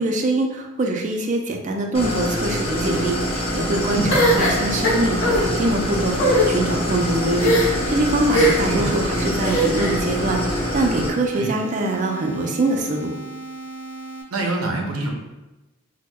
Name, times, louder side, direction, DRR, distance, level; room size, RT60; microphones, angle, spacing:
voice 1, 0.0-13.1, right 2 dB, 35° right, 2 dB, 0.4 m, -24 dB
Idling, 1.9-11.1, left 1 dB, 25° left, 0.5 m, -25 dB
sound 1, 2.8-14.2, right 2 dB, 10° left, 1.3 m, -36 dB
sound 2, 4.1-5.4 6.1-6.5 7.4-7.9 8.3-8.8 9.4-10.0, equal, 70° left, 0.9 m, -19 dB
voice 2, 14.3-15.1, right 2 dB, 90° right, 0 dB, 0.6 m, -25 dB
4.3 x 2.1 x 2.2 m, 1.0 s
head